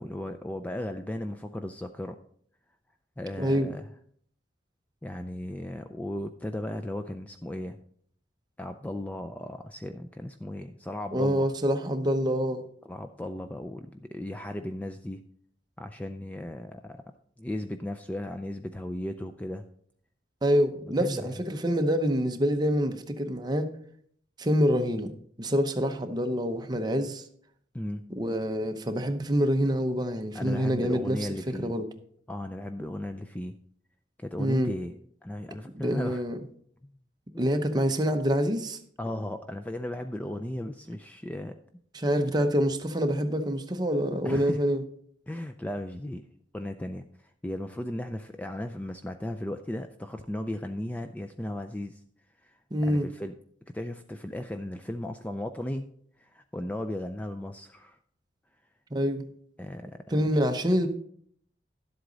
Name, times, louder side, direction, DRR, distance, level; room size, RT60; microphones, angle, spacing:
voice 1, 0.0-2.2 3.2-3.9 5.0-7.8 8.6-11.5 12.8-15.3 15.8-17.0 17.4-19.7 21.0-21.3 27.7-28.0 30.3-31.8 32.3-33.6 34.2-34.9 35.2-36.2 36.8-36.9 39.0-41.6 44.2-44.6 45.3-46.2 46.5-52.0 52.4-53.4 53.7-55.9 56.2-58.0 59.6-60.2, left 1 dB, 10° left, 7 dB, 0.4 m, -36 dB
voice 2, 3.4-3.7 11.1-12.6 20.4-23.7 24.4-25.1 25.4-27.2 28.1-31.2 31.5-31.9 34.4-34.7 35.7-36.4 37.4-38.8 41.9-44.8 52.7-53.1 58.9-59.3 60.1-60.9, equal, 25° right, 6 dB, 0.8 m, -26 dB
11.5 x 7.9 x 4.0 m, 0.62 s
head